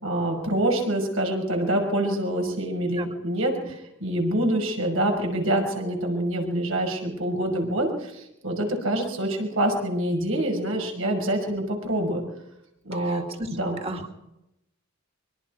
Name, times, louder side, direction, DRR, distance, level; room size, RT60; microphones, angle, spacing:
voice 1, 0.0-12.2 12.8-13.2 13.5-13.8, right 1 dB, 80° right, 3 dB, 5.9 m, -26 dB
voice 2, 12.9-13.5 13.8-14.3, right 2 dB, 30° right, 4 dB, 2.2 m, -35 dB
24.5 x 23.5 x 4.7 m, 0.86 s
head